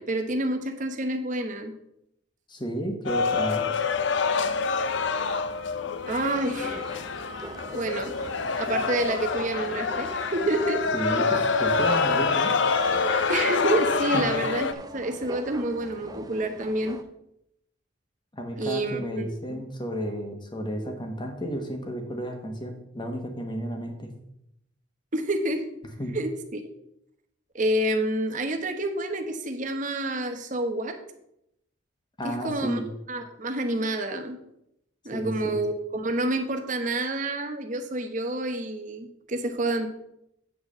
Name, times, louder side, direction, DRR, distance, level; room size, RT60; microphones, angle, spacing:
voice 1, 0.0-1.7 6.0-6.9 7.7-8.1 8.6-10.8 13.3-17.0 18.6-19.5 25.1-25.6 26.1-26.6 27.5-31.0 32.2-32.8 33.1-34.4 35.0-39.9, right 1 dB, 40° right, 5 dB, 1.0 m, -28 dB
voice 2, 2.5-3.6 10.9-12.5 14.1-14.3 18.3-24.1 26.0-26.2 32.2-32.9 35.1-35.6, equal, 25° left, 3 dB, 1.3 m, -32 dB
sound 1, 3.1-14.7, left 4 dB, 60° left, 0.6 m, -26 dB
sound 2, 6.1-17.0, right 2 dB, 20° right, 0.6 m, -42 dB
8.5 x 4.6 x 6.7 m, 0.80 s
head